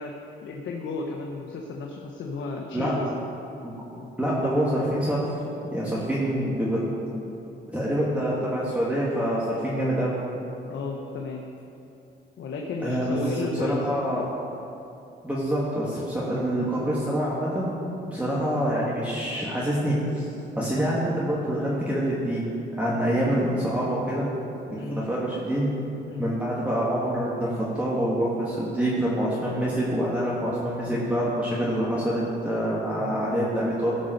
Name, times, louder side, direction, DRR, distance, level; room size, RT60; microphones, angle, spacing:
voice 1, 0.0-3.2 4.0-4.1 8.0-8.1 10.7-11.4 12.4-14.2 18.2-18.4 24.7-25.0 26.1-26.3 33.0-33.2, left 3 dB, 70° left, 0 dB, 1.1 m, -34 dB
voice 2, 4.2-5.2 5.7-6.8 7.7-10.2 12.8-13.2 13.5-14.3 15.2-17.8 18.1-20.3 20.6-22.4 22.8-24.3 24.7-25.7 26.2-33.9, equal, 5° right, -7 dB, 2.3 m, -26 dB
16.0 x 5.4 x 6.6 m, 2.7 s
cardioid pair, 90°, 20 cm